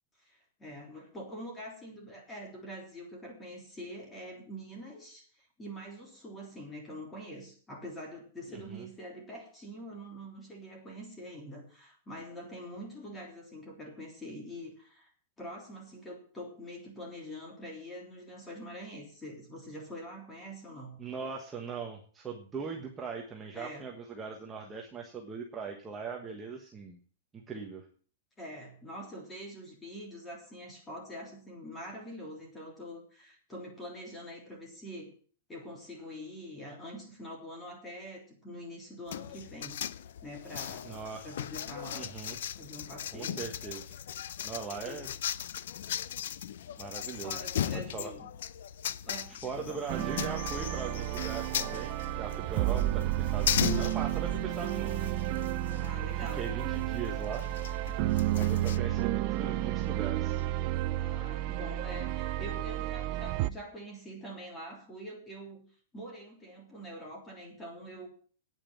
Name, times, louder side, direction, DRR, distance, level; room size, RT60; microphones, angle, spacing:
voice 1, 0.2-15.1 15.4-21.0 23.5-23.9 28.4-35.1 35.5-39.8 40.2-40.9 41.2-42.1 42.5-43.4 44.8-45.0 47.2-48.3 49.0-50.2 55.8-56.5 58.7-59.0 60.9-65.6 65.9-68.1, equal, 10° left, 1 dB, 3.3 m, -45 dB
voice 2, 8.5-8.8 21.0-27.0 27.3-27.9 40.8-41.3 41.9-42.4 43.1-43.9 44.4-45.1 46.8-47.4 47.7-48.1 49.3-55.2 56.2-57.5 58.4-60.4, right 5 dB, 10° right, 0 dB, 1.3 m, -40 dB
sound 1, 39.1-58.8, left 10 dB, 65° left, 0.6 m, -38 dB
sound 2, 49.9-63.5, right 14 dB, 35° right, 0.5 m, -31 dB
9.2 x 8.8 x 8.7 m, 0.43 s
supercardioid pair, 165°, 0 cm